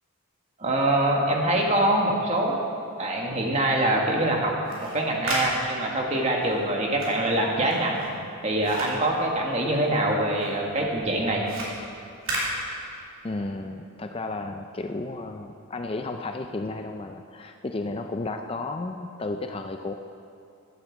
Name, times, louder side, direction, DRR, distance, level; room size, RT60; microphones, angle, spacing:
voice 1, 0.6-2.6 3.0-4.5 4.8-8.0 8.4-11.4, right 1 dB, 30° right, -1 dB, 1.6 m, -24 dB
sound 1, 4.5-10.0 10.3-13.3, right 1 dB, 70° right, 3.2 m, -35 dB
voice 2, 13.2-19.9, left 2 dB, 25° left, 6 dB, 0.4 m, -33 dB
12.0 x 7.9 x 7.5 m, 2.5 s
head